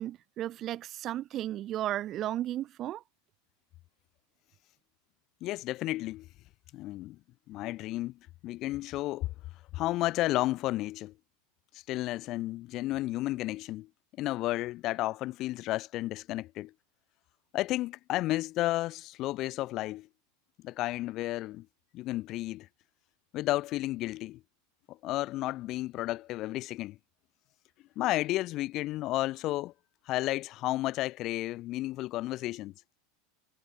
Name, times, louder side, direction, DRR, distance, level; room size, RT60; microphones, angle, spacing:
voice 1, 0.0-3.0, right 13 dB, 40° right, 1.6 m, -34 dB
voice 2, 5.4-6.3 6.7-7.2 7.5-9.3 9.7-11.1 11.9-13.9 14.2-16.7 17.5-20.1 20.6-21.7 21.9-22.7 23.3-24.4 24.9-27.0 28.0-29.7 30.1-32.7, left 17 dB, 45° left, 3.8 m, -32 dB
figure-of-eight pair, 80°, 0 cm